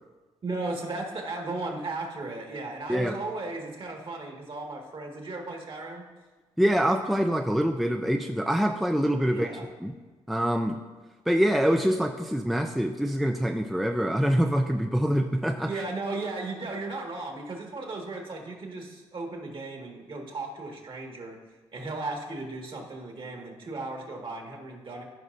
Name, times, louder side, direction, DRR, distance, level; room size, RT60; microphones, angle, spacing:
voice 1, 0.4-6.0 9.3-9.7 15.7-21.4 21.7-25.0, right 2 dB, 45° right, 1 dB, 1.8 m, -36 dB
voice 2, 6.6-9.5 9.8-9.9 10.3-10.8 11.3-15.8, equal, ahead, 4 dB, 0.4 m, -25 dB
14.0 x 4.9 x 2.6 m, 1.3 s
cardioid pair, 70°, 12 cm